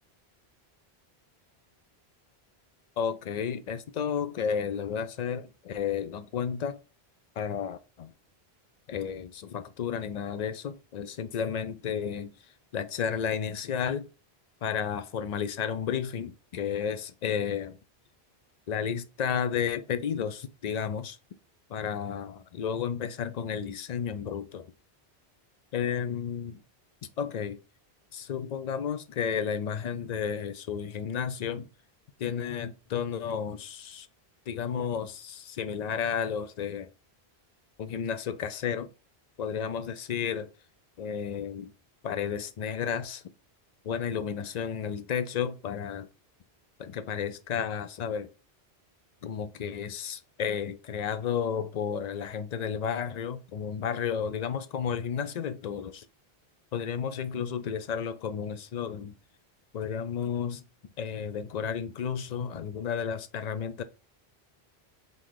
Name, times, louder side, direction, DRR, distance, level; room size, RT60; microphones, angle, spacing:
voice 1, 3.0-6.8 7.4-8.1 8.9-12.3 12.7-14.1 14.6-17.8 18.7-21.2 21.7-24.7 25.7-26.6 27.0-27.6 28.1-31.7 32.2-34.1 34.5-36.9 37.8-38.9 39.4-40.5 41.0-41.7 42.0-43.2 43.8-46.1 46.8-48.3 49.2-56.0 56.7-59.1 59.7-60.6 61.0-63.8, left 7 dB, 55° left, 0.5 m, -32 dB
3.8 x 2.7 x 4.7 m
omnidirectional pair, 1.1 m